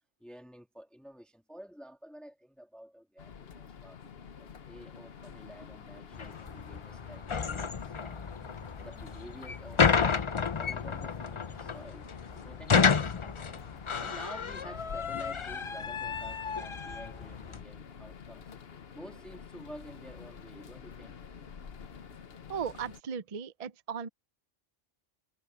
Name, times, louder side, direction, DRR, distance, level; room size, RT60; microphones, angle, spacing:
voice 1, 0.2-8.2 8.8-10.2 10.6-12.1 12.3-13.1 14.0-18.6 18.9-21.2, equal, ahead, 2.0 m, -50 dB
sound 1, 3.2-23.0, left 6 dB, 55° left, 1.2 m, -48 dB
sound 2, 6.1-17.6, left 5 dB, 35° left, 0.5 m, -31 dB
voice 2, 22.5-24.1, right 7 dB, 45° right, 0.5 m, -37 dB
omnidirectional pair, 1.3 m